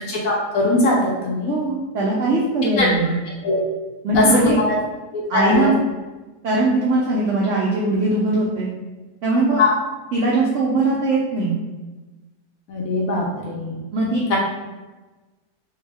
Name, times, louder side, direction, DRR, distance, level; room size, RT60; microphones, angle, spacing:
voice 1, 0.1-1.5 2.8-2.9 3.4-3.6 4.1-4.3 4.7-4.8 5.1-5.7 9.6-9.7 12.7-13.8 14.3-14.4, left 2 dB, 70° left, -3 dB, 0.9 m, -20 dB
voice 2, 1.4-3.2 4.0-4.6 5.3-5.8 6.4-8.7 9.2-9.6 10.1-11.6 13.9-14.2, right 2 dB, 80° right, -5 dB, 0.6 m, -20 dB
3.4 x 2.1 x 3.3 m, 1.2 s
omnidirectional pair, 1.8 m